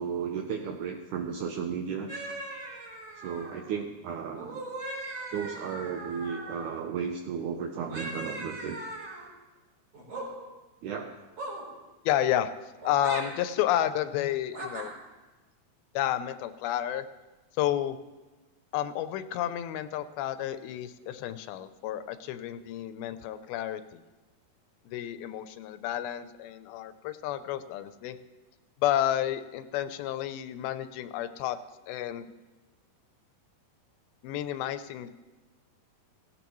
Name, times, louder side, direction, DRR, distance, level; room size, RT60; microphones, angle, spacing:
voice 1, 0.0-2.1 3.2-4.6 5.3-8.8 10.8-11.2, right 7 dB, 80° right, 4 dB, 1.8 m, -34 dB
sound 1, 2.1-3.7 4.3-6.7 7.9-9.3 9.9-10.3 11.4-11.6 12.8-13.3 14.5-14.9, right 2 dB, 45° right, 4.6 m, -39 dB
voice 2, 12.1-12.5 12.8-14.9 16.0-17.1 17.6-18.0 18.7-24.0 24.9-28.2 28.8-31.6 31.9-32.3 34.2-35.1, left 12 dB, 85° left, 11 dB, 2.4 m, -31 dB
17.0 x 16.5 x 3.1 m, 1.2 s
omnidirectional pair, 4.3 m